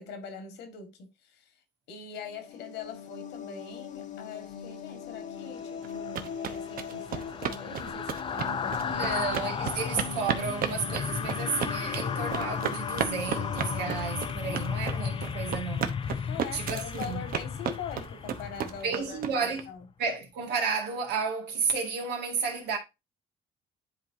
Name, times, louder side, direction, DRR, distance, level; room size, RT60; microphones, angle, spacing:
voice 1, 0.0-1.6 1.9-9.7 16.2-19.9, left 6 dB, 85° left, 1.8 m, -43 dB
sound 1, 2.2-15.8, left 7 dB, 50° left, 1.0 m, -41 dB
sound 2, 5.8-19.6, right 8 dB, 60° right, 0.9 m, -34 dB
sound 3, 5.9-19.3 19.6-19.8, left 6 dB, 30° left, 0.5 m, -34 dB
voice 2, 8.8-16.0 16.5-17.3 18.8-19.7 20.0-22.8, right 5 dB, 80° right, 2.0 m, -32 dB
10.5 x 3.8 x 2.7 m
cardioid pair, 110°, 17 cm